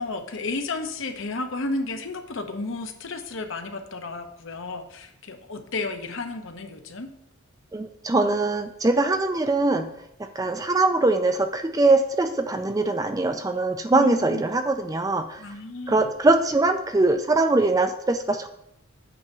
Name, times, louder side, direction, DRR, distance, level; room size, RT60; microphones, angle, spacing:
voice 1, 0.0-7.1 13.9-14.4 15.4-16.1, left 3 dB, 65° left, 6 dB, 0.9 m, -32 dB
voice 2, 7.7-9.9 10.2-15.4 15.9-18.5, right 2 dB, 15° right, 8 dB, 0.4 m, -22 dB
8.4 x 3.5 x 6.7 m, 0.78 s
head